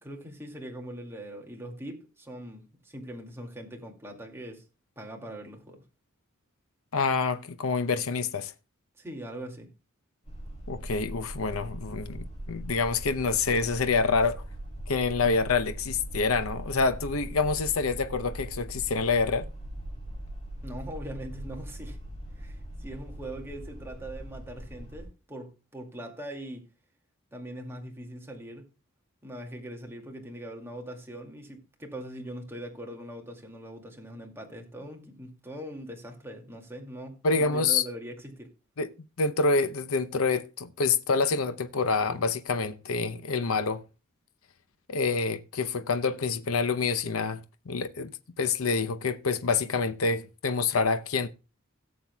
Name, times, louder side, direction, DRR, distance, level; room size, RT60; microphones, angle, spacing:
voice 1, 0.0-4.6 5.0-5.8 9.0-9.7 20.6-22.0 22.4-26.7 27.3-28.7 29.2-37.2 37.5-38.5, right 1 dB, 10° right, 2.2 m, -41 dB
voice 2, 6.9-8.5 10.7-14.4 14.9-19.5 37.2-37.8 38.8-38.9 39.2-43.8 44.9-47.4 47.7-48.1 48.4-51.3, left 4 dB, 75° left, 0.7 m, -27 dB
sound 1, 10.3-25.1, right 1 dB, 30° left, 5.3 m, -40 dB
17.5 x 7.7 x 2.3 m
head